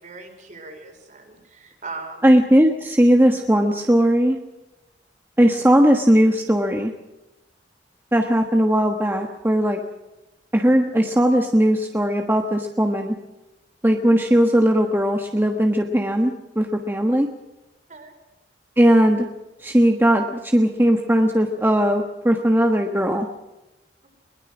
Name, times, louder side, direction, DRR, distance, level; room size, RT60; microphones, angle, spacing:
voice 1, 0.0-2.3 13.9-14.1 17.9-18.1, right 3 dB, 45° right, 3 dB, 5.0 m, -39 dB
voice 2, 2.2-4.4 5.4-6.9 8.1-9.8 10.5-13.2 13.8-17.3 18.8-19.3 19.6-23.3, equal, 10° right, 3 dB, 1.3 m, -18 dB
22.0 x 21.0 x 6.2 m, 1.0 s
head